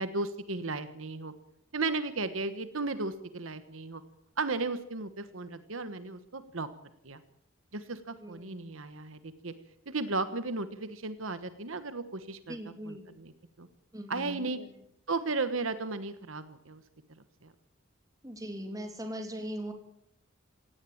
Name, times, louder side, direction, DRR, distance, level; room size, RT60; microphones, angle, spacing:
voice 1, 0.0-1.3 1.7-4.0 4.4-6.7 7.0-7.2 7.7-9.5 9.9-12.6 12.9-13.3 13.6-13.7 14.1-14.6 15.1-16.8 17.4-17.5, right 3 dB, 75° right, 11 dB, 1.3 m, -35 dB
voice 2, 8.2-8.7 12.5-13.1 13.9-14.7 18.2-19.7, equal, 15° right, 5 dB, 3.2 m, -40 dB
17.5 x 17.5 x 8.7 m, 0.73 s
head